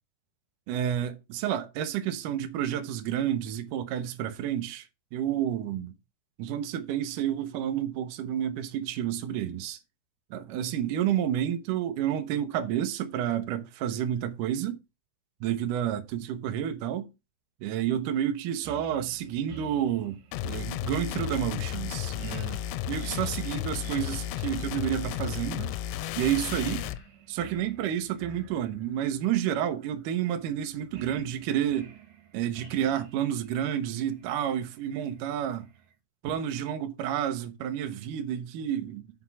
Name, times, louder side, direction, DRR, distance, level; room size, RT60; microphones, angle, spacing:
voice 1, 0.7-5.9 6.4-9.8 10.3-14.8 15.4-17.1 17.6-22.6 22.9-25.7 26.2-26.9 27.3-31.9 32.3-35.7 36.2-39.0, right 10 dB, 80° right, 1.8 m, -30 dB
sound 1, 18.6-35.9, right 7 dB, 65° right, 2.6 m, -52 dB
sound 2, 20.3-27.0, left 12 dB, 90° left, 2.8 m, -33 dB
5.9 x 5.6 x 6.1 m
omnidirectional pair, 5.0 m